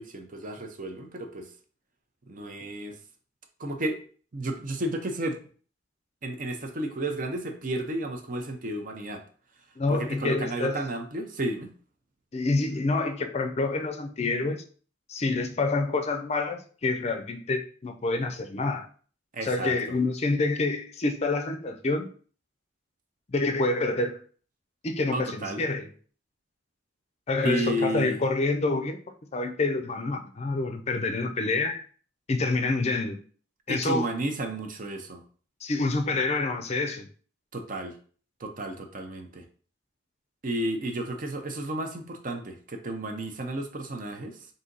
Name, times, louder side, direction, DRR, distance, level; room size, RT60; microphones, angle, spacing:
voice 1, 0.0-1.5 2.3-3.0 3.6-4.0 4.3-5.4 6.2-9.2 9.9-11.7 19.3-20.0 25.1-25.6 27.4-28.2 33.7-35.2 37.5-38.0 38.4-39.4 40.4-44.5, right 1 dB, 45° right, 0.6 m, -32 dB
voice 2, 9.8-10.8 12.3-14.6 15.1-18.9 19.4-22.1 23.3-24.2 24.8-25.9 27.3-29.0 29.3-31.8 32.3-33.2 33.7-34.1 35.6-37.1, left 3 dB, 35° left, 0.5 m, -27 dB
4.1 x 2.7 x 3.9 m
head